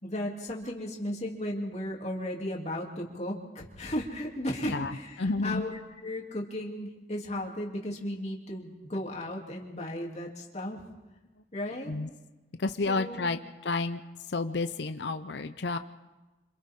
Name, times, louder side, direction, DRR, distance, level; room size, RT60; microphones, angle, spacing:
voice 1, 0.0-10.8 11.5-11.9 12.9-13.3, left 1 dB, 35° left, -1 dB, 3.0 m, -35 dB
voice 2, 5.2-5.6 11.9-12.1 12.6-14.0 14.3-15.8, left 3 dB, 60° left, 9 dB, 0.7 m, -30 dB
27.0 x 26.5 x 3.7 m, 1.1 s
head